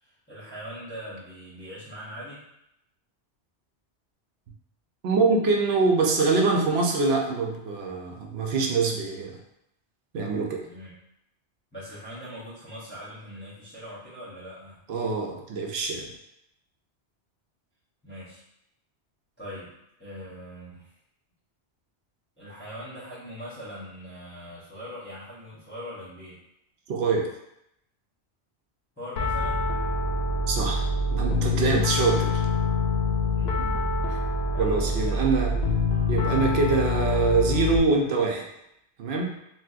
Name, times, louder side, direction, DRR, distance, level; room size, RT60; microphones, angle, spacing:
voice 1, 0.0-2.4 10.7-10.9 11.7-14.8 18.0-18.4 19.4-19.7 20.0-20.9 22.4-26.4 29.0-29.7 33.2-33.6 34.5-35.3, equal, 10° left, -12 dB, 0.8 m, -41 dB
voice 2, 5.0-9.3 10.1-10.6 14.9-16.1 26.9-27.3 30.5-32.4 33.6-34.2 34.6-35.6 36.1-38.5 39.0-39.4, right 4 dB, 70° right, 0 dB, 0.8 m, -24 dB
Piano, 29.2-37.8, left 3 dB, 70° left, 0.8 m, -25 dB
4.0 x 2.2 x 2.4 m, 0.81 s
omnidirectional pair, 1.2 m